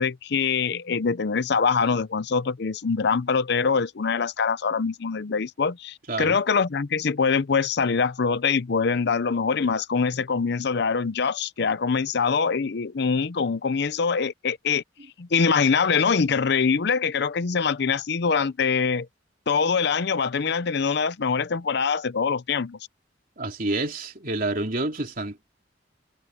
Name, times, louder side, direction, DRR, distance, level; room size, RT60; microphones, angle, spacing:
voice 1, 0.0-14.8 15.2-19.1 19.5-22.8, left 5 dB, 60° left, 0.6 m, -24 dB
voice 2, 23.4-25.5, right 2 dB, 45° right, 3.5 m, -28 dB
head